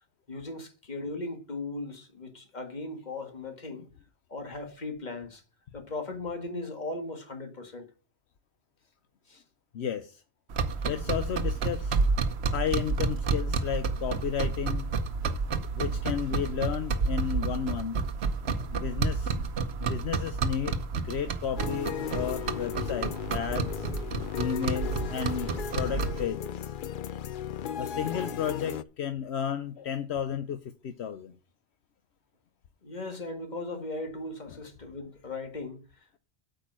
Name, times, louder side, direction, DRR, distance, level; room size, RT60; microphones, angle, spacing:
voice 1, 0.3-3.9 4.3-5.4 5.7-7.9 9.3-9.4 18.6-18.7 32.8-36.2, left 2 dB, 40° left, 1.9 m, -38 dB
voice 2, 9.7-10.2 10.8-12.0 12.5-14.9 15.7-18.0 18.7-19.5 19.8-23.9 24.4-26.7 27.8-31.3, left 8 dB, 75° left, 1.0 m, -33 dB
sound 1, 10.5-26.3, right 4 dB, 70° right, 1.1 m, -30 dB
sound 2, 21.6-28.8, left 8 dB, 55° left, 0.7 m, -36 dB
8.4 x 5.3 x 7.5 m
omnidirectional pair, 1.1 m